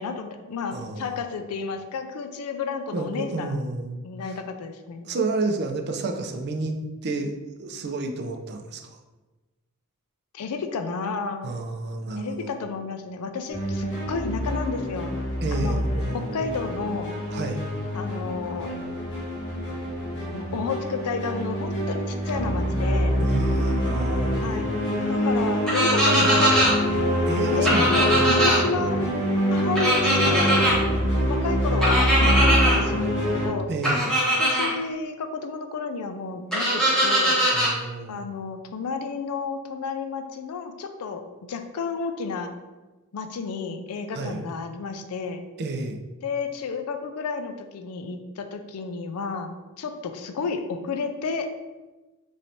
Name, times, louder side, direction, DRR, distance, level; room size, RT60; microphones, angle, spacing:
voice 1, 0.0-3.6 4.0-5.1 10.3-11.6 12.2-15.1 15.5-15.8 16.1-17.1 17.9-18.8 20.3-23.2 24.4-24.7 25.1-27.0 27.5-29.0 29.5-30.7 31.3-33.7 34.4-37.4 38.1-42.5 43.1-45.4 46.2-51.5, left 5 dB, 80° left, 7 dB, 0.4 m, -31 dB
voice 2, 0.7-1.1 2.9-4.0 4.3-4.4 5.0-6.7 7.0-7.3 7.6-9.0 11.4-12.5 15.4-16.3 17.3-17.6 23.2-24.6 27.3-28.5 33.7-34.1 37.5-38.2 44.1-44.5 45.6-46.0, right 3 dB, 50° right, 4 dB, 0.4 m, -30 dB
sound 1, 13.5-33.5, equal, 55° left, 1.3 m, -25 dB
sound 2, 25.7-26.7 27.6-28.6 29.7-30.7 31.8-32.8 33.8-34.7 36.5-37.7, right 1 dB, 5° left, 1.0 m, -21 dB
3.2 x 2.6 x 4.2 m, 1.2 s
head